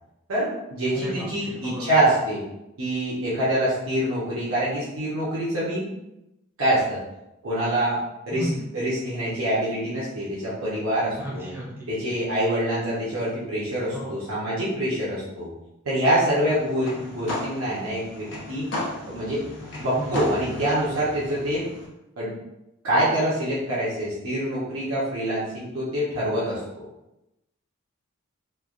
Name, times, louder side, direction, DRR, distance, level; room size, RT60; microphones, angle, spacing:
voice 1, 0.3-2.4 2.8-5.8 6.6-7.0 7.4-8.0 8.3-11.5 11.9-15.5 15.8-18.6 19.0-19.4 19.8-21.7 22.2-22.3 22.8-26.6, right 1 dB, 80° right, -9 dB, 0.8 m, -25 dB
voice 2, 0.9-1.9 8.3-8.7 11.2-11.9 13.9-14.2 19.9-20.1, right 1 dB, 10° right, -5 dB, 0.7 m, -33 dB
sound 1, 16.4-21.9, left 2 dB, 60° left, 0.7 m, -35 dB
3.2 x 2.3 x 2.4 m, 0.90 s
head